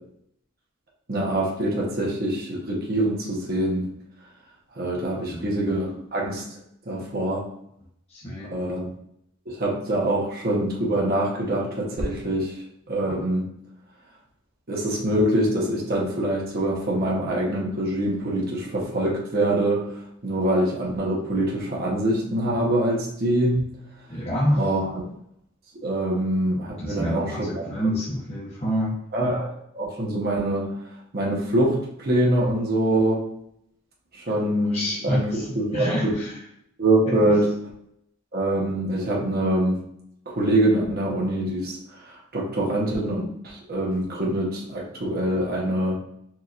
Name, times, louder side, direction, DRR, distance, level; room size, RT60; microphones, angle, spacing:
voice 1, 1.1-3.9 4.7-6.4 6.9-7.5 8.5-8.9 9.5-12.5 12.9-13.4 14.7-19.9 20.2-23.7 24.6-24.9 25.8-27.4 29.1-29.5 29.7-30.7 31.1-33.2 34.1-36.1 36.8-37.5 38.3-39.8 40.3-41.8 42.0-46.0, right 1 dB, 50° right, -3 dB, 1.0 m, -24 dB
voice 2, 8.1-8.6 24.1-24.8 26.8-28.9 34.7-36.4 37.1-37.3, equal, 30° left, -7 dB, 1.0 m, -28 dB
4.7 x 2.9 x 2.5 m, 0.75 s
head